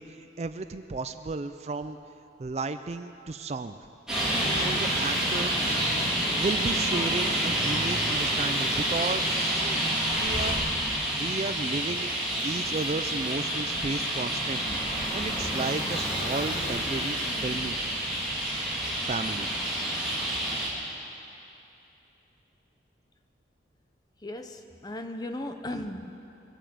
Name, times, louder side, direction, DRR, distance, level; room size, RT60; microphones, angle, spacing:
voice 1, 0.0-2.0 2.4-3.8 4.6-5.5 6.4-9.8 10.1-10.7 11.0-12.1 12.4-14.8 15.1-17.8 19.1-19.5, right 3 dB, 35° right, 10 dB, 0.4 m, -33 dB
Traffic noise roadway noise, 4.1-20.7, right 1 dB, 5° right, 3.1 m, -28 dB
Human voice, 15.9-18.7, left 1 dB, 50° left, 1.7 m, -45 dB
voice 2, 24.2-26.1, left 1 dB, 20° left, 6 dB, 0.7 m, -36 dB
22.5 x 8.0 x 7.8 m, 2.9 s
head